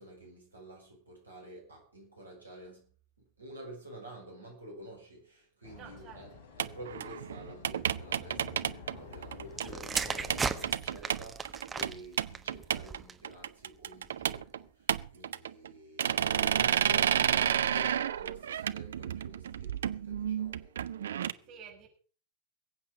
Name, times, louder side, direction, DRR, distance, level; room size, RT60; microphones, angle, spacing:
voice 1, 0.0-2.9 3.2-6.3 6.6-20.7 21.2-21.6, right 1 dB, 80° right, 6.3 m, -49 dB
sound 1, 5.6-10.8, left 5 dB, 50° left, 3.2 m, -50 dB
voice 2, 5.7-6.2 21.4-21.9, right 8 dB, 35° right, 6.2 m, -51 dB
sound 2, 6.6-9.7 9.9-10.0 10.3-13.0 13.2-14.6 14.9-15.7 16.0-21.3, right 9 dB, 65° right, 0.6 m, -31 dB
sound 3, 9.5-13.3 14.1-14.4, right 5 dB, 15° right, 1.2 m, -36 dB
21.0 x 8.6 x 5.2 m
figure-of-eight pair, 90°, 0 cm